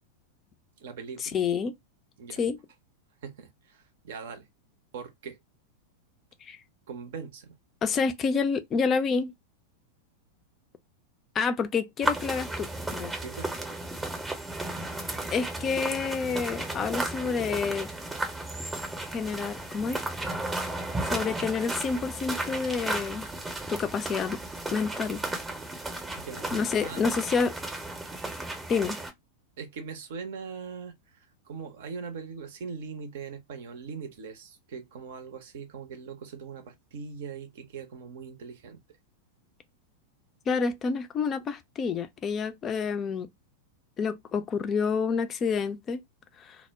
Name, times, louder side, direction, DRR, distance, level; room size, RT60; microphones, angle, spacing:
voice 1, 0.8-1.4 2.2-2.4 3.2-4.5 4.9-5.4 6.9-7.6 13.2-13.5 26.2-27.0 29.6-38.8, right 5 dB, 55° right, 0.6 m, -41 dB
voice 2, 1.3-1.7 2.4-2.6 6.4-6.6 7.8-9.3 11.3-13.1 15.3-17.9 19.1-20.0 21.0-23.3 23.7-24.4 24.7-25.2 26.5-27.6 28.7-29.0 40.5-43.3 44.0-46.0 46.4-46.6, left 5 dB, 25° left, 0.4 m, -28 dB
sound 1, 12.0-29.1, right 2 dB, 10° right, 0.7 m, -34 dB
2.1 x 2.0 x 3.4 m
figure-of-eight pair, 90°, 0 cm